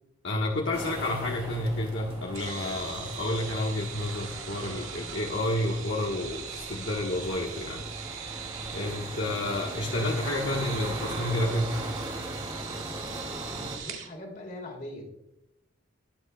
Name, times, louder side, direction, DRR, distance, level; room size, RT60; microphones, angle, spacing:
voice 1, 0.2-7.8 8.7-11.9, left 1 dB, 60° left, -2 dB, 1.3 m, -30 dB
sound 1, 0.7-13.8, right 1 dB, 30° right, 2.1 m, -39 dB
sound 2, 2.3-14.1, right 7 dB, 85° right, 1.8 m, -41 dB
voice 2, 8.7-9.0 13.5-15.1, left 1 dB, 45° left, 0 dB, 2.7 m, -42 dB
21.0 x 8.0 x 2.2 m, 0.88 s
head